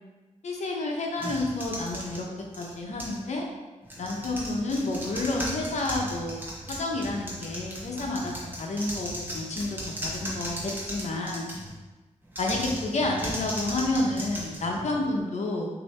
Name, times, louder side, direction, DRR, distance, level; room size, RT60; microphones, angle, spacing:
voice 1, 0.4-2.2 2.6-3.5 4.0-8.3 8.6-11.5 12.4-15.7, left 2 dB, 65° left, 0 dB, 0.8 m, -30 dB
sound 1, 1.2-3.3 3.8-11.8 12.3-15.2, equal, 15° right, 0.8 m, -37 dB
5.6 x 2.7 x 3.2 m, 1.2 s
wide cardioid pair, 175°, 12 cm